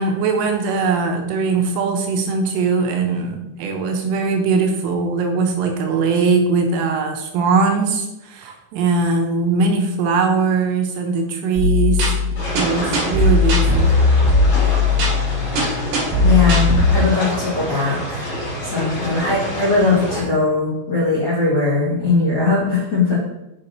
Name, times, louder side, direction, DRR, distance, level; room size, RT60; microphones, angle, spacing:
voice 1, 0.0-12.1 12.5-13.9, right 4 dB, 80° right, 3 dB, 3.1 m, -20 dB
sound 1, 11.6-16.9, left 3 dB, 60° right, 2.5 m, -17 dB
sound 2, 12.3-20.2, left 1 dB, 40° left, 2.3 m, -27 dB
voice 2, 16.2-18.3 18.6-23.2, left 3 dB, 75° left, -11 dB, 1.0 m, -19 dB
6.6 x 6.6 x 2.8 m, 0.94 s
omnidirectional pair, 5.9 m